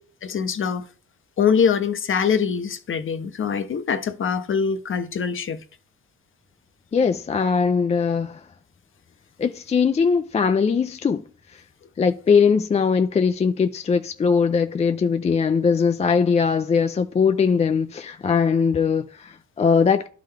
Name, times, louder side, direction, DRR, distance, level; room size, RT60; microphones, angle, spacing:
voice 1, 0.2-0.9 1.4-5.6, left 6 dB, 45° left, 0.7 m, -23 dB
voice 2, 6.9-8.4 9.4-11.2 11.5-11.6 12.0-20.1, left 5 dB, 25° left, 0.3 m, -20 dB
11.0 x 3.8 x 3.3 m
cardioid pair, 90°, 30 cm